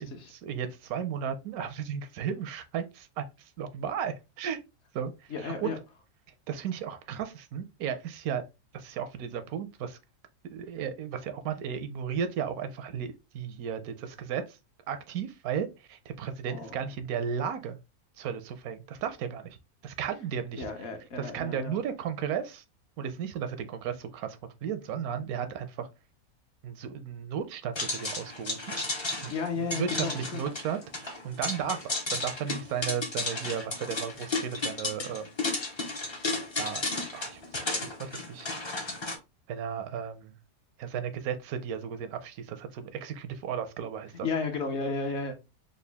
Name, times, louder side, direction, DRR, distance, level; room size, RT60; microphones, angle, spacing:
voice 1, 0.0-3.2 3.6-4.6 4.9-5.1 5.4-5.7 6.5-8.4 8.7-10.0 10.5-14.6 14.9-17.8 18.2-19.5 19.8-20.6 21.2-22.6 23.0-25.9 26.6-28.7 29.2-29.3 29.8-35.3 36.6-36.8 37.1-37.4 37.8-38.5 39.5-40.3 40.8-44.3, right 8 dB, 80° right, 1.0 m, -34 dB
voice 2, 5.3-5.8 16.5-16.8 20.6-21.7 29.3-30.4 44.2-45.3, left 4 dB, 55° left, 0.9 m, -33 dB
sound 1, 27.7-39.1, left 2 dB, 35° left, 0.4 m, -33 dB
3.9 x 2.3 x 3.3 m
omnidirectional pair, 1.6 m